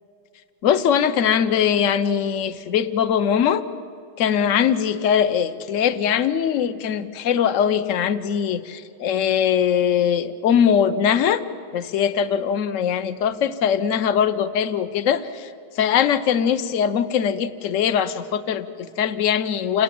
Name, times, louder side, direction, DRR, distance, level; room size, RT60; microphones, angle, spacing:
voice 1, 0.6-3.6 4.2-11.4 11.7-15.5 15.8-19.8, left 8 dB, 50° left, 12 dB, 1.0 m, -21 dB
29.0 x 18.5 x 8.8 m, 2.4 s
omnidirectional pair, 2.1 m